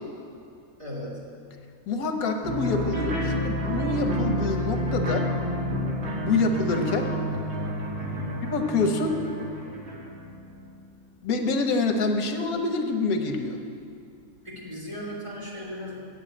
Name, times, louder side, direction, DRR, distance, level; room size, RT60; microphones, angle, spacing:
voice 1, 0.8-1.2 7.9-8.5 14.4-16.1, equal, 20° right, -6 dB, 2.3 m, -37 dB
voice 2, 1.9-5.3 6.2-7.1 8.5-9.2 11.2-13.6, left 3 dB, 90° left, 5 dB, 1.4 m, -26 dB
sound 1, 2.4-10.8, equal, 50° right, 2.0 m, -29 dB
8.2 x 7.5 x 8.5 m, 2.4 s
omnidirectional pair, 1.5 m